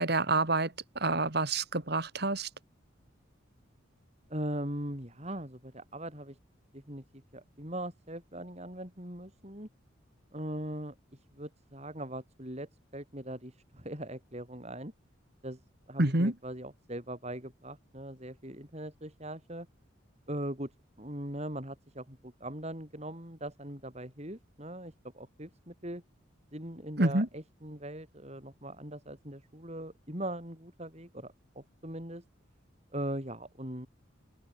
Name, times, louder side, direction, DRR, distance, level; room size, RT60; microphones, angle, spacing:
voice 1, 0.0-2.5 16.0-16.3 27.0-27.3, right 2 dB, 55° right, 2.6 m, -28 dB
voice 2, 4.3-6.4 6.7-7.0 7.3-9.7 10.3-14.9 15.4-15.6 15.9-19.7 20.3-20.7 21.0-26.0 26.5-32.2 32.9-33.9, right 1 dB, 35° right, 7.4 m, -40 dB
head